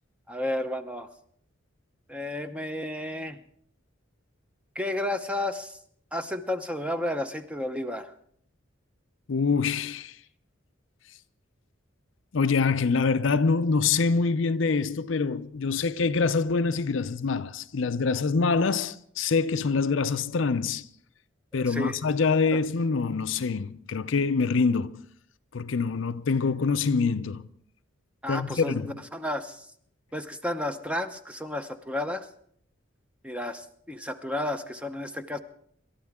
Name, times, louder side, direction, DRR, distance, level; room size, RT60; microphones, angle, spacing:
voice 1, 0.3-1.1 2.1-3.4 4.7-5.8 6.1-8.1 21.5-22.0 22.5-22.6 28.2-28.8 29.1-29.7 30.1-32.3 33.2-35.4, left 1 dB, 5° right, 0.8 m, -32 dB
voice 2, 9.3-10.1 12.3-20.8 21.5-25.0 25.5-27.4 28.3-28.9, left 4 dB, 70° left, 0.6 m, -25 dB
28.0 x 12.5 x 3.6 m
head